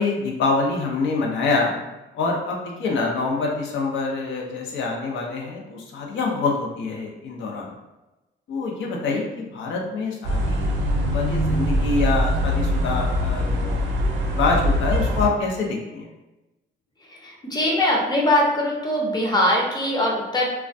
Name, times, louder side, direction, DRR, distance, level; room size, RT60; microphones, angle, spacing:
voice 1, 0.0-1.7 2.1-7.7 8.5-13.8 14.1-16.1, left 3 dB, 70° left, -1 dB, 0.6 m, -26 dB
sound 1, 10.2-15.3, equal, 65° right, 0.5 m, -22 dB
voice 2, 17.0-20.5, left 1 dB, 20° left, -2 dB, 0.6 m, -22 dB
2.2 x 2.1 x 2.6 m, 1.0 s
cardioid pair, 90°, 20 cm